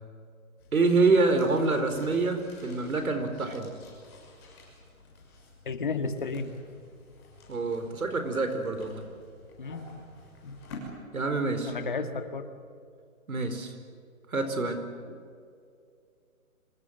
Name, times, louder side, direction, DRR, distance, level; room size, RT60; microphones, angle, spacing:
sound 1, 0.6-10.8, left 4 dB, 20° left, 6.5 m, -52 dB
voice 1, 0.7-3.7 7.5-9.0 11.1-11.7 13.3-13.7 14.3-14.8, right 3 dB, 75° right, 8 dB, 4.7 m, -26 dB
voice 2, 5.7-6.5 9.6-10.1 10.4-10.6 11.7-12.5 15.1-15.2, left 4 dB, 35° left, 8 dB, 1.9 m, -33 dB
26.0 x 25.0 x 7.8 m, 2.3 s
hypercardioid pair, 180°, 43 cm